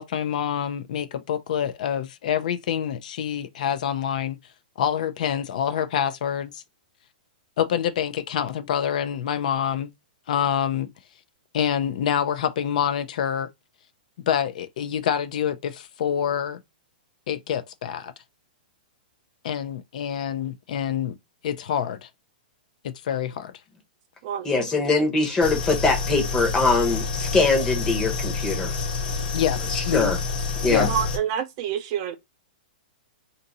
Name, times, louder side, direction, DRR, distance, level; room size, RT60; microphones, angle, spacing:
voice 1, 0.0-4.4 4.8-6.6 7.6-9.9 10.3-10.9 11.5-13.5 14.3-16.6 17.3-18.1 19.4-21.1 21.4-22.1 22.8-23.5 29.3-30.1 30.7-30.9, left 9 dB, 55° left, 0.5 m, -26 dB
voice 2, 24.4-28.7 29.7-30.2 30.6-30.9, left 3 dB, 10° left, 0.9 m, -22 dB
sound 1, 25.4-31.2, left 4 dB, 80° left, 1.1 m, -28 dB
voice 3, 30.9-32.1, right 9 dB, 35° right, 0.4 m, -27 dB
2.7 x 2.6 x 3.9 m
hypercardioid pair, 165°, 5 cm